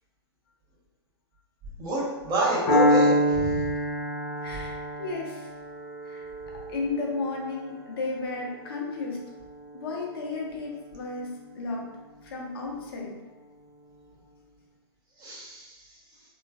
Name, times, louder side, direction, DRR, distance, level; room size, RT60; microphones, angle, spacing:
voice 1, 1.8-3.7 15.2-15.8, right 2 dB, 30° right, -5 dB, 0.9 m, -28 dB
Piano, 2.7-10.6, equal, 20° left, 0.9 m, -27 dB
voice 2, 4.4-5.5 6.0-6.3 6.7-9.2 9.7-11.9 12.2-13.1, left 3 dB, 65° left, -1 dB, 0.6 m, -33 dB
3.0 x 2.3 x 2.3 m, 1.1 s
hypercardioid pair, 110°, 14 cm